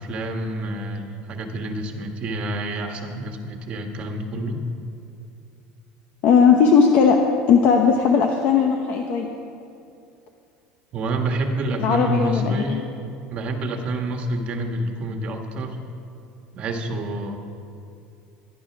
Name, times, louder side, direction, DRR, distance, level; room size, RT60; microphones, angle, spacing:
voice 1, 0.0-4.6 10.9-12.9 13.3-15.9 16.5-17.4, right 1 dB, 35° right, 4 dB, 1.5 m, -28 dB
voice 2, 6.2-7.2 7.5-9.3 11.8-12.8, left 6 dB, 50° left, 3 dB, 1.0 m, -17 dB
14.5 x 10.5 x 6.0 m, 2.5 s
cardioid pair, 160°, 3 cm